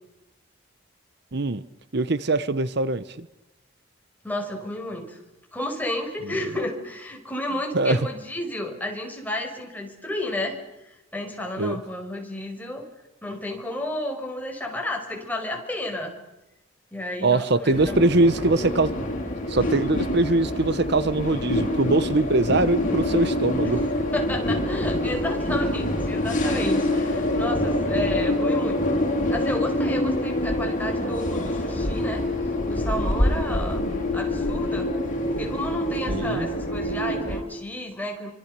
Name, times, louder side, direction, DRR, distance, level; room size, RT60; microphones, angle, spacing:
voice 1, 1.3-1.6 1.9-3.3 7.7-8.0 11.6-11.8 17.2-18.9 19.5-23.9 36.1-36.5, right 2 dB, 55° right, 15 dB, 1.0 m, -22 dB
voice 2, 4.2-5.2 5.5-10.6 10.8-12.9 13.2-16.1 16.9-18.0 19.6-19.7 23.7-23.8 24.1-29.0 29.3-32.3 32.7-34.9 35.4-38.3, left 1 dB, 10° left, 2 dB, 5.4 m, -32 dB
sound 1, 17.7-37.4, left 1 dB, 40° left, 6.5 m, -26 dB
27.0 x 25.5 x 6.8 m, 0.96 s
head